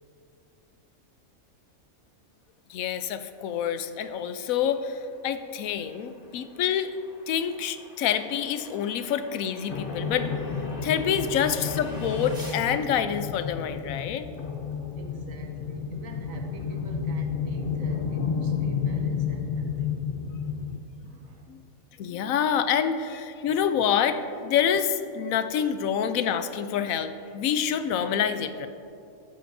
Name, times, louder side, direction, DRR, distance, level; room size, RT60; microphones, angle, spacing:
voice 1, 2.7-6.9 7.3-10.3 10.8-14.3 21.5-21.6 22.0-28.7, left 8 dB, 80° left, 10 dB, 1.0 m, -27 dB
sound 1, 4.0-12.6, equal, 5° right, 1.7 m, -48 dB
sound 2, 9.7-20.8, left 6 dB, 50° left, 0.7 m, -31 dB
voice 2, 15.0-20.0 21.0-21.6 23.4-23.5, right 2 dB, 75° right, 3 dB, 1.4 m, -46 dB
12.5 x 8.7 x 2.6 m, 2.6 s
omnidirectional pair, 1.4 m